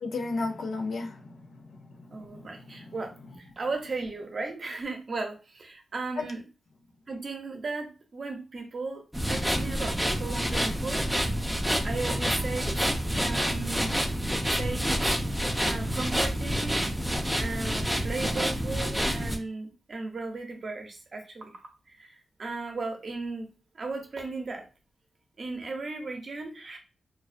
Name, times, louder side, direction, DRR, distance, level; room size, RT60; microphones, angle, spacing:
voice 1, 0.0-3.0 6.2-6.3, left 3 dB, 70° left, 0.4 m, -35 dB
voice 2, 2.1-6.4 7.1-9.0 9.3-11.0 11.8-13.9 14.5-15.1 15.6-21.5 21.9-23.5 23.7-24.6 25.4-26.8, right 3 dB, 50° right, 0.6 m, -36 dB
sound 1, 9.1-19.4, equal, ahead, 0.4 m, -28 dB
2.4 x 2.2 x 2.4 m
wide cardioid pair, 100°, 0 cm